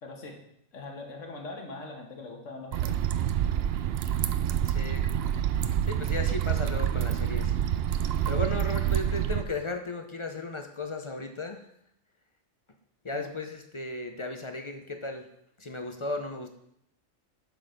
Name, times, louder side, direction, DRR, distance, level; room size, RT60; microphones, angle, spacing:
voice 1, 0.0-0.4 0.7-2.9 13.1-13.3, left 3 dB, 70° left, 2 dB, 1.8 m, -41 dB
sound 1, 2.7-9.4, right 10 dB, 65° right, 0.6 m, -27 dB
voice 2, 4.6-5.1 5.8-7.6 8.2-11.7 13.0-15.3 15.6-16.5, left 2 dB, 35° left, 5 dB, 0.5 m, -35 dB
7.7 x 6.1 x 5.1 m, 0.74 s
omnidirectional pair, 1.4 m